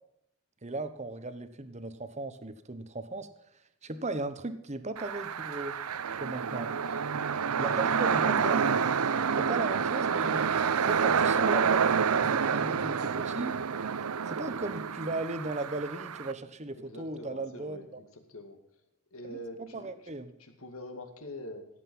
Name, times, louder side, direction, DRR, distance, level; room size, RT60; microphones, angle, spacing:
voice 1, 0.6-3.3 3.8-5.8 6.2-6.7 7.6-8.7 9.4-10.5 10.8-13.6 14.3-18.0 19.3-19.4 19.7-20.3, right 2 dB, 30° right, 11 dB, 1.0 m, -36 dB
sound 1, 5.0-16.3, right 6 dB, 80° right, 0.6 m, -28 dB
voice 2, 7.3-8.0 16.7-18.6 19.1-21.7, left 1 dB, 70° left, 6 dB, 2.3 m, -45 dB
17.0 x 8.2 x 5.5 m, 0.77 s
head